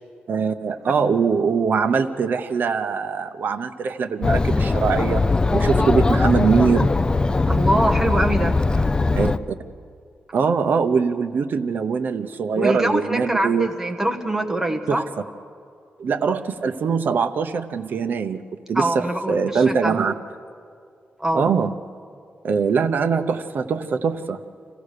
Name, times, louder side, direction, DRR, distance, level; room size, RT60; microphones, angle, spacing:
voice 1, 0.3-5.3 5.5-6.9 9.1-9.6 10.3-13.7 14.9-15.0 16.0-18.4 18.7-20.1 21.3-21.7 22.4-24.4, right 5 dB, 60° right, 6 dB, 0.8 m, -22 dB
Chatter, 4.2-9.4, left 3 dB, 20° left, 0.4 m, -20 dB
voice 2, 7.5-8.9 12.5-15.1 18.7-20.0 21.2-21.5, right 1 dB, 10° right, 4 dB, 1.3 m, -24 dB
26.0 x 15.5 x 6.6 m, 2.3 s
wide cardioid pair, 130°, 4 cm